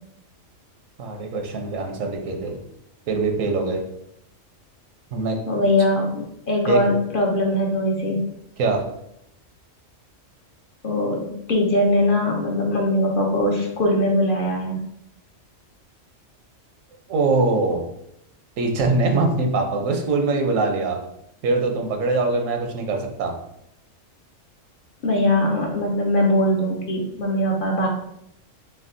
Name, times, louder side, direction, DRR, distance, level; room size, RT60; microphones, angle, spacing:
voice 1, 1.0-2.6 3.1-3.8 5.1-5.4 6.7-6.8 8.6-8.8 17.1-17.8 18.6-21.0 21.4-23.3, right 3 dB, 85° right, 3 dB, 1.1 m, -22 dB
voice 2, 5.5-8.2 10.8-14.8 25.0-27.9, left 1 dB, 50° left, 0 dB, 0.7 m, -21 dB
6.1 x 2.3 x 2.6 m, 0.76 s
omnidirectional pair, 1.3 m